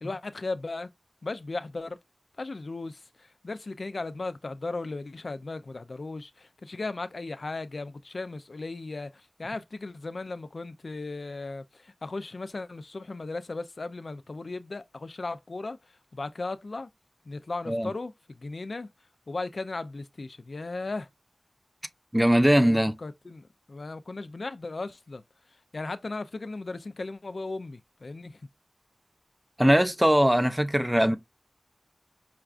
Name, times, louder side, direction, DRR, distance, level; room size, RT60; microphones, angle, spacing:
voice 1, 0.0-0.9 1.2-2.0 2.4-15.8 16.1-16.9 17.3-18.9 19.3-21.1 22.5-25.2 25.7-28.4, left 3 dB, 80° left, 0.4 m, -36 dB
voice 2, 22.1-23.0 29.6-31.2, equal, 10° right, 0.5 m, -21 dB
5.7 x 2.3 x 2.4 m
wide cardioid pair, 70°, 0 cm